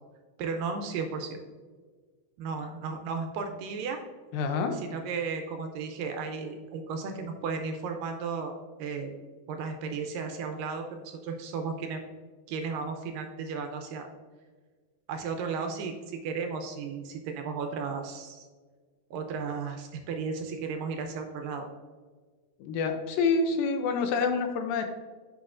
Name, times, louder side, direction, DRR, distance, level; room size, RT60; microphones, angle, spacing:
voice 1, 0.4-1.4 2.4-4.0 4.9-8.5 8.8-9.1 9.5-12.0 12.5-14.1 15.1-18.5 19.1-21.7, right 5 dB, 80° right, 4 dB, 2.1 m, -34 dB
voice 2, 4.3-4.8 22.6-24.8, left 4 dB, 80° left, 6 dB, 2.2 m, -27 dB
8.4 x 6.0 x 2.5 m, 1.5 s
omnidirectional pair, 4.3 m